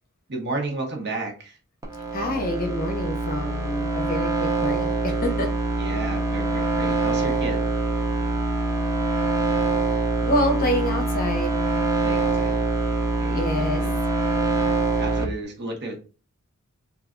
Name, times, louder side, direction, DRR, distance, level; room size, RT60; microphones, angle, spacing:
voice 1, 0.3-1.6 5.8-7.7 12.0-12.6 13.1-14.0 15.0-16.0, right 2 dB, 50° right, 1 dB, 0.9 m, -33 dB
sound 1, 1.8-15.2, right 2 dB, 15° right, 0.5 m, -24 dB
voice 2, 2.1-5.5 10.2-11.6 13.3-13.8, left 1 dB, 40° left, 3 dB, 0.7 m, -27 dB
3.2 x 2.4 x 2.5 m, 0.34 s
head